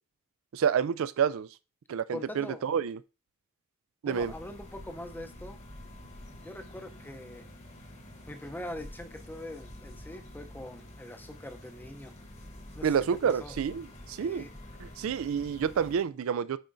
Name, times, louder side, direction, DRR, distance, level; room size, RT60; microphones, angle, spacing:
voice 1, 0.5-1.5 1.9-3.0 4.0-4.3 12.8-14.4 14.8-16.6, right 7 dB, 65° right, 0.3 m, -29 dB
voice 2, 2.1-2.6 4.0-5.6 6.4-7.5 8.3-12.1 12.7-13.6 14.1-14.5, left 1 dB, 10° left, 0.6 m, -43 dB
sound 1, 4.1-16.0, left 1 dB, 30° left, 1.1 m, -48 dB
9.1 x 4.3 x 2.6 m
head